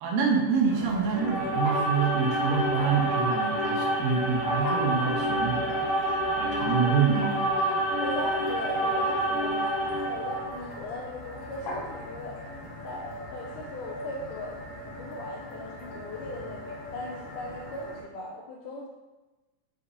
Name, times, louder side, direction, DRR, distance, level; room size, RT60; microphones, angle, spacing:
voice 1, 0.0-5.9 6.4-7.4, right 6 dB, 80° right, 0 dB, 2.6 m, -26 dB
sound 1, 0.7-18.0, left 1 dB, 60° left, 2.0 m, -40 dB
sound 2, 1.1-10.6, right 1 dB, 40° right, 0.5 m, -28 dB
voice 2, 8.0-12.6 12.8-14.6 15.0-18.9, left 2 dB, 85° left, -1 dB, 1.8 m, -39 dB
6.5 x 5.7 x 2.6 m, 1.1 s
omnidirectional pair, 4.2 m